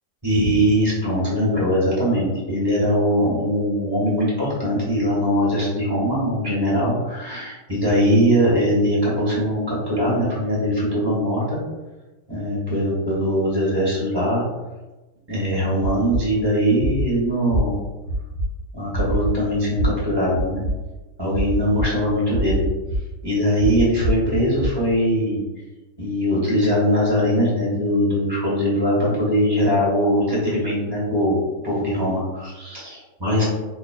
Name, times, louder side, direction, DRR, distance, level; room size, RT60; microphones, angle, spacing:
voice 1, 0.2-11.6 12.3-14.4 15.3-17.8 18.7-20.6 21.2-22.7 23.2-25.4 26.0-31.3 31.6-33.4, equal, 15° right, -7 dB, 1.2 m, -21 dB
sound 1, 15.8-16.2 16.8-17.0 17.5-17.6 18.1-18.4 18.9-19.3 19.8-19.9 20.3-20.7 21.3-21.8 22.3-23.0 23.6-24.7, right 2 dB, 55° left, 1.7 m, -24 dB
4.1 x 3.7 x 2.3 m, 1.1 s
omnidirectional pair, 2.3 m